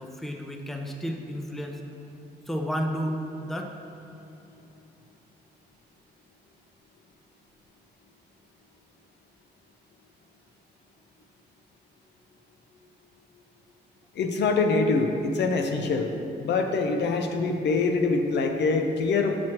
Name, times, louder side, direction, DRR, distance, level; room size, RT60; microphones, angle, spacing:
voice 1, 0.0-1.8 2.5-3.8, equal, ahead, 3 dB, 0.5 m, -32 dB
voice 2, 14.2-16.1 16.4-19.4, left 3 dB, 75° left, 4 dB, 0.6 m, -24 dB
7.5 x 6.1 x 2.9 m, 2.8 s
cardioid pair, 110°, 18 cm